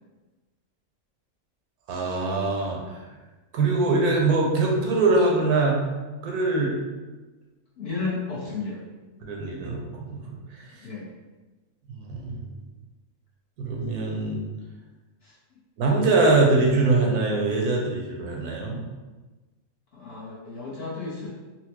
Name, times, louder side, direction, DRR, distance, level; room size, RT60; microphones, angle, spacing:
voice 1, 1.9-3.0 3.5-5.8 6.2-6.8 9.2-10.6 11.9-12.4 13.6-14.4 15.8-18.8, right 3 dB, 85° right, -1 dB, 1.2 m, -23 dB
voice 2, 7.8-8.8 10.8-11.1 15.2-15.3 19.9-21.3, left 4 dB, 55° left, -6 dB, 0.8 m, -33 dB
4.2 x 2.1 x 2.9 m, 1.2 s
omnidirectional pair, 1.6 m